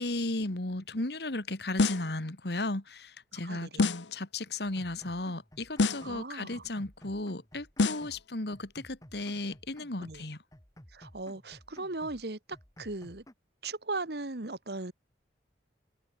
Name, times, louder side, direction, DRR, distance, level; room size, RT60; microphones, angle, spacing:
voice 1, 0.0-10.4, left 2 dB, 60° left, 2.0 m, -35 dB
sound 1, 1.8-2.2 3.8-4.2 5.8-6.2 7.8-8.2, left 3 dB, 80° left, 0.9 m, -27 dB
voice 2, 3.3-3.9 6.0-6.6 10.0-10.3 10.9-12.4 12.8-13.2 13.6-14.9, right 2 dB, 60° right, 1.5 m, -38 dB
sound 2, 4.6-6.3 6.5-8.3 8.5-10.3 10.5-12.3 12.5-13.3, equal, 20° left, 3.4 m, -54 dB
head